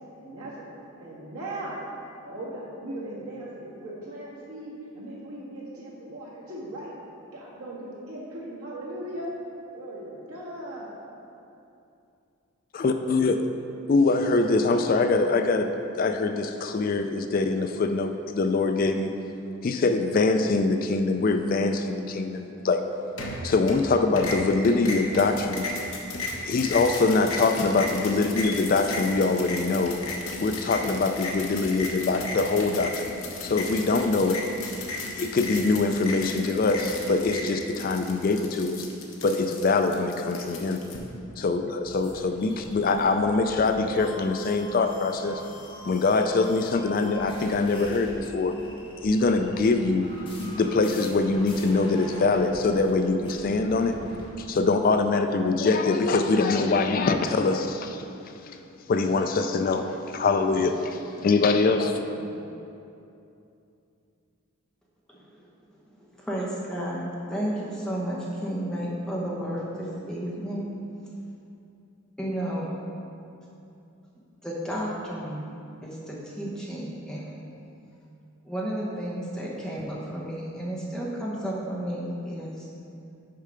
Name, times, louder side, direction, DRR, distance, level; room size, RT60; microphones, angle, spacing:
voice 1, 0.2-0.7 1.0-1.8 2.2-6.9 7.3-9.3 9.7-11.0 61.5-62.4, right 1 dB, 80° right, -6 dB, 1.8 m, -38 dB
voice 2, 12.7-13.5 13.9-19.1 19.6-22.8 23.4-25.7 26.5-30.0 30.4-33.1 33.4-34.4 35.1-38.9 39.2-40.8 41.4-45.4 45.9-48.6 49.0-50.1 50.4-54.0 54.4-58.6 58.9-62.0, left 3 dB, 40° left, 7 dB, 0.3 m, -24 dB
sound 1, 23.2-23.9 24.2-41.0, left 2 dB, 65° left, 1.0 m, -35 dB
sound 2, 41.9-54.3, left 1 dB, 25° left, 1.1 m, -44 dB
voice 3, 66.1-70.7 72.2-72.7 74.4-75.5 75.8-77.3 78.4-82.7, equal, 5° left, -5 dB, 0.9 m, -32 dB
6.5 x 5.6 x 5.0 m, 2.7 s
head